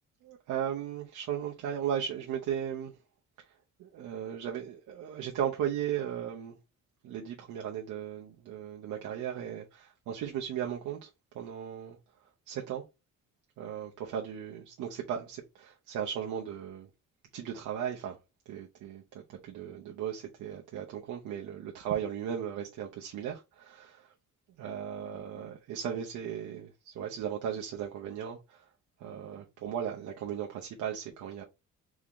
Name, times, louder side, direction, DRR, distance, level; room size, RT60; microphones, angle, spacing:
voice 1, 0.2-2.9 3.8-6.6 7.0-11.1 11.3-12.0 12.5-12.8 13.6-16.9 17.3-18.2 18.5-24.1 24.6-28.7 29.0-31.4, right 9 dB, 80° right, 0.8 m, -36 dB
3.6 x 3.6 x 3.1 m
cardioid pair, 90°, 30 cm